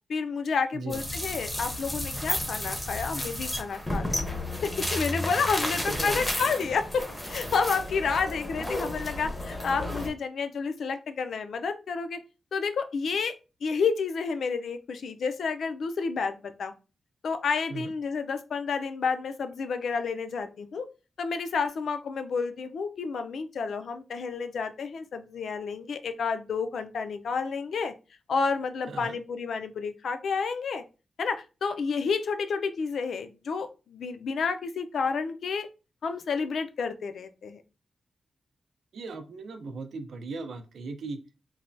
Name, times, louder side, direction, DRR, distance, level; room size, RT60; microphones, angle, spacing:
voice 1, 0.1-12.2 12.5-13.4 13.6-16.7 17.2-20.9 21.2-27.9 28.3-30.8 31.2-35.7 36.0-37.6, left 5 dB, 70° left, 9 dB, 0.3 m, -30 dB
sound 1, 0.9-10.1, left 1 dB, 15° left, 0.5 m, -32 dB
voice 2, 5.8-6.2 17.7-17.9 28.9-29.2 38.9-41.2, right 4 dB, 85° right, 6 dB, 0.4 m, -38 dB
3.1 x 2.1 x 2.5 m, 0.31 s
wide cardioid pair, 180°, 0 cm